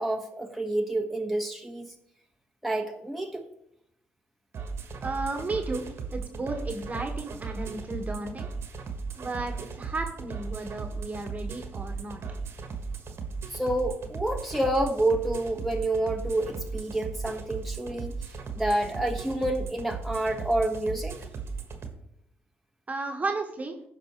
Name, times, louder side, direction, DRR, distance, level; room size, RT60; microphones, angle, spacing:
voice 1, 0.0-1.9 2.6-3.4 13.5-18.1 18.5-21.2, right 1 dB, ahead, 1 dB, 1.6 m, -28 dB
sound 1, 4.5-21.9, right 5 dB, 55° right, 1.4 m, -37 dB
voice 2, 5.0-8.5 9.2-12.2 22.9-23.8, right 3 dB, 30° right, 4 dB, 1.5 m, -34 dB
15.5 x 5.4 x 3.1 m, 0.79 s
hypercardioid pair, 55°, 5 cm